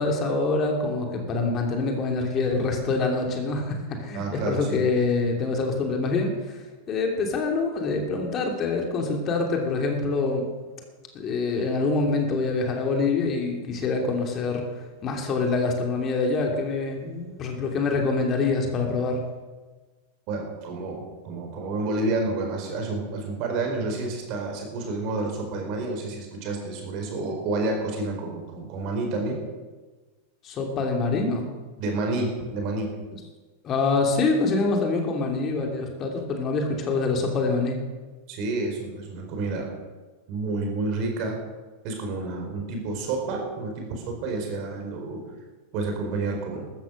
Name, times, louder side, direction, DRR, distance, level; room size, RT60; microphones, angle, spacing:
voice 1, 0.0-6.6 6.9-10.4 11.1-14.6 15.0-19.2 30.4-31.5 33.6-37.8, left 3 dB, 30° left, 2 dB, 3.0 m, -25 dB
voice 2, 4.1-4.8 20.3-29.4 31.8-32.9 38.3-39.7 40.3-41.4 41.8-45.2 45.7-46.6, right 2 dB, 40° right, 2 dB, 4.5 m, -29 dB
14.0 x 13.5 x 6.4 m, 1.3 s
figure-of-eight pair, 90°, 0 cm